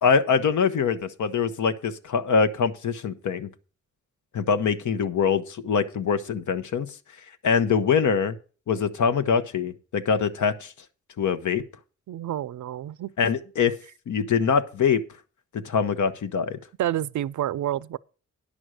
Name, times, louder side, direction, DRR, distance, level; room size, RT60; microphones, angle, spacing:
voice 1, 0.0-3.5 4.3-6.9 7.4-8.4 8.7-10.7 11.2-11.6 13.2-13.7 14.1-15.0 15.5-16.6, left 6 dB, 85° left, 0.9 m, -23 dB
voice 2, 12.1-13.1 16.8-18.0, right 12 dB, 85° right, 0.4 m, -29 dB
10.0 x 6.2 x 6.4 m
wide cardioid pair, 95°, 29 cm